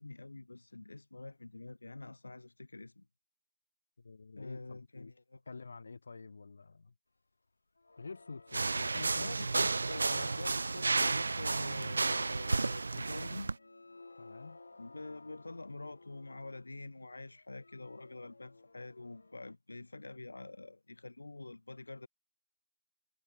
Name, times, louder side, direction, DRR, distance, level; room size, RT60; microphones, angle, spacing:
voice 1, 0.0-3.1 4.4-5.4 9.2-13.5 14.8-22.1, left 2 dB, 80° left, 3.9 m, -46 dB
voice 2, 4.0-5.1 5.5-6.9 8.0-9.6 14.2-14.6, left 4 dB, 40° left, 3.0 m, -48 dB
sound 1, 7.8-11.6 13.0-13.1 13.4-16.9 17.3-19.6, left 3 dB, 60° left, 7.2 m, -57 dB
sound 2, 8.5-13.5, right 3 dB, 50° right, 0.8 m, -32 dB
figure-of-eight pair, 180°, 0 cm